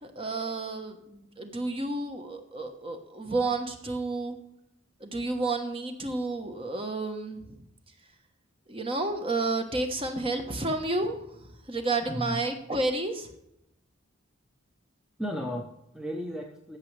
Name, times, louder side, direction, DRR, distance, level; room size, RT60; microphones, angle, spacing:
voice 1, 0.0-4.4 5.0-7.6 8.7-13.3, right 2 dB, 25° right, 5 dB, 1.1 m, -31 dB
voice 2, 12.1-12.4 15.2-16.8, equal, 5° right, 1 dB, 0.7 m, -35 dB
14.5 x 6.4 x 3.3 m, 0.82 s
head